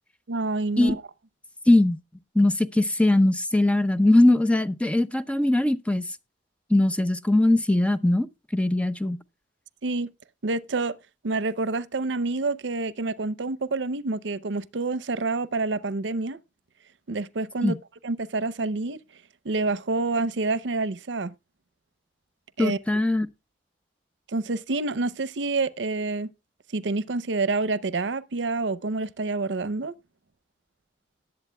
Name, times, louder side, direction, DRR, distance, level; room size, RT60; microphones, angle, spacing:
voice 1, 0.3-1.0 9.8-10.1 10.4-11.0 11.2-16.4 17.1-17.8 18.0-19.0 19.4-21.3 22.6-22.8 24.3-26.3 26.7-29.9, right 3 dB, 85° right, 0.7 m, -27 dB
voice 2, 1.7-2.0 2.3-6.0 6.7-8.3 8.5-9.2 17.6-17.7 22.6-23.3, left 1 dB, 5° left, 0.6 m, -20 dB
19.0 x 8.0 x 2.2 m
head